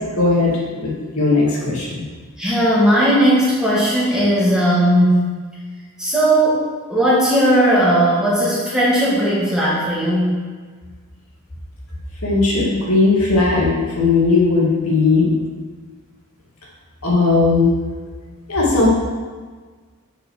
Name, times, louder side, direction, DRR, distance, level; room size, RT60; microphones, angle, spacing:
voice 1, 0.1-2.0 12.2-15.3 17.0-17.7 18.5-18.9, left 3 dB, 80° left, -4 dB, 2.1 m, -17 dB
voice 2, 2.4-5.3 6.0-6.6 6.9-10.4, right 1 dB, 5° right, -8 dB, 1.9 m, -16 dB
6.5 x 4.6 x 6.4 m, 1.5 s
head